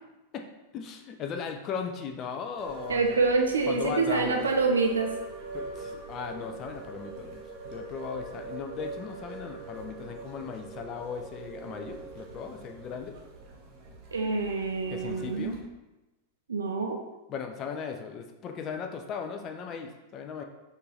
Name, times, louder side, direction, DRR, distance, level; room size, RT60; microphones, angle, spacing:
voice 1, 0.7-3.2 3.7-4.5 5.5-13.1 14.9-15.6 17.3-20.4, left 6 dB, 35° left, 4 dB, 0.4 m, -37 dB
sound 1, 2.6-15.6, right 3 dB, 40° right, 0.7 m, -42 dB
voice 2, 2.9-5.1 14.1-15.6 16.5-17.0, right 4 dB, 70° right, 3 dB, 0.3 m, -26 dB
4.4 x 2.5 x 3.2 m, 1.0 s
figure-of-eight pair, 90°, 0 cm